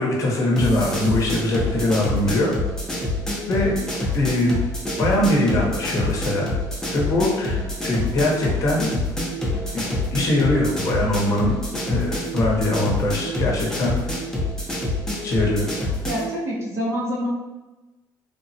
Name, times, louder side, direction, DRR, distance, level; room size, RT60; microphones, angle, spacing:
voice 1, 0.0-2.5 3.5-3.7 4.1-4.6 5.0-6.5 6.9-7.6 7.8-9.1 9.7-11.5 11.9-14.0 15.2-15.7, left 1 dB, 45° left, -3 dB, 0.8 m, -22 dB
sound 1, 0.6-16.3, left 1 dB, 5° left, 0.5 m, -26 dB
voice 2, 16.1-17.3, equal, 35° right, -4 dB, 0.6 m, -26 dB
3.3 x 2.1 x 2.6 m, 1.1 s
cardioid pair, 150°, 8 cm